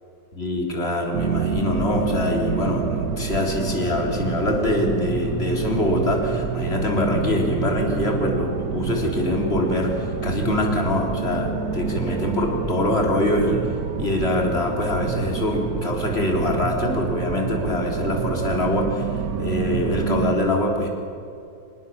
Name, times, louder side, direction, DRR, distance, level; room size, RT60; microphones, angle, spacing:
voice 1, 0.4-13.6 14.0-20.9, left 1 dB, 30° left, 0 dB, 3.9 m, -24 dB
sound 1, 1.1-20.3, right 5 dB, 55° right, 1.7 m, -28 dB
26.0 x 19.5 x 7.2 m, 2.6 s
omnidirectional pair, 2.1 m